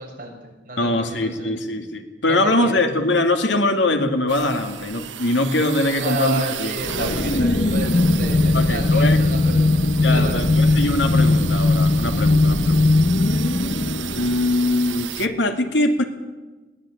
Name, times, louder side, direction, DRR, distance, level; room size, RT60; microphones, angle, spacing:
voice 1, 0.0-1.6 2.3-2.8 6.0-10.5, right 2 dB, 45° right, 0 dB, 6.8 m, -31 dB
voice 2, 0.8-7.4 8.5-9.2 10.0-12.9 14.1-16.0, left 2 dB, 75° left, 6 dB, 2.3 m, -22 dB
sound 1, 4.3-15.3, right 10 dB, 85° right, 0.9 m, -34 dB
sound 2, 6.8-15.1, left 2 dB, 45° left, 0.8 m, -19 dB
21.0 x 18.0 x 9.0 m, 1.2 s
head